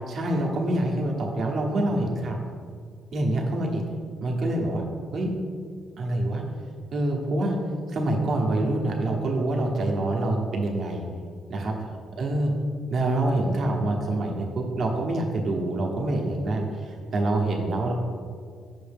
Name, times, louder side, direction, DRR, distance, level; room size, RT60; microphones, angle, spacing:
voice 1, 0.1-2.4 3.1-3.8 4.2-4.8 5.1-5.3 6.0-6.4 6.9-7.6 7.9-11.0 11.5-11.7 12.2-12.5 12.9-17.9, right 1 dB, 60° right, 0 dB, 1.1 m, -26 dB
6.2 x 5.4 x 3.5 m, 2.1 s
cardioid pair, 90°, 0 cm